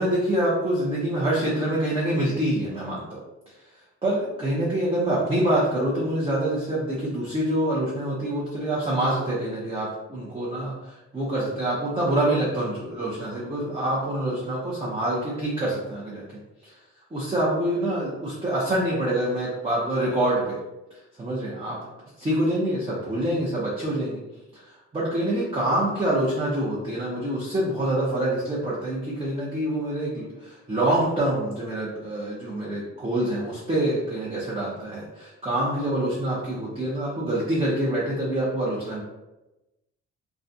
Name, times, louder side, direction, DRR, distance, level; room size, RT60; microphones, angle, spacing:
voice 1, 0.0-3.2 4.0-16.2 16.6-16.8 17.1-20.6 21.2-21.8 22.2-24.2 24.5-39.0, right 1 dB, 20° right, -7 dB, 0.6 m, -26 dB
2.3 x 2.2 x 2.6 m, 1.0 s
cardioid pair, 90°, 30 cm